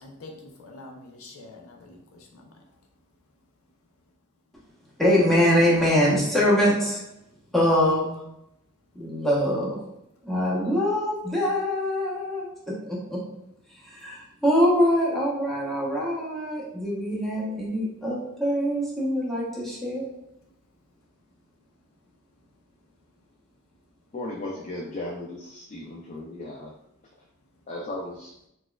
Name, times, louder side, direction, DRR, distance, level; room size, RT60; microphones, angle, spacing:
voice 1, 0.0-2.8, left 2 dB, 85° left, 2 dB, 0.6 m, -46 dB
voice 2, 5.0-7.0 7.5-8.2 8.9-9.8 10.2-13.2 13.8-20.1, equal, ahead, -6 dB, 0.8 m, -24 dB
voice 3, 24.1-26.7 27.7-28.3, left 2 dB, 35° left, -2 dB, 0.4 m, -36 dB
4.1 x 2.4 x 2.2 m, 0.78 s
head